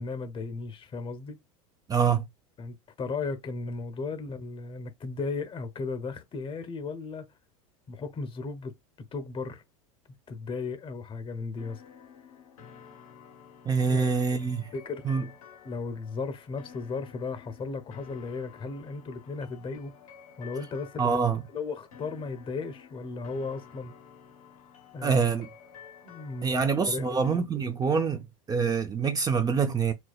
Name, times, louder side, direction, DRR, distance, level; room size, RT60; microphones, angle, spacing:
voice 1, 0.0-1.4 2.6-7.3 7.9-8.7 9.1-9.6 10.3-11.8 13.9-14.1 14.7-15.2 15.6-19.9 20.4-21.2 21.5-23.9 24.9-25.2 26.0-27.2, left 4 dB, 30° left, 0.9 m, -35 dB
voice 2, 1.9-2.3 13.6-14.7 15.0-15.3 21.0-21.4 25.0-25.5 26.4-29.9, right 5 dB, 20° right, 0.5 m, -25 dB
sound 1, 11.6-27.4, left 7 dB, 85° left, 1.2 m, -52 dB
4.3 x 2.1 x 2.3 m
hypercardioid pair, 95°, 18 cm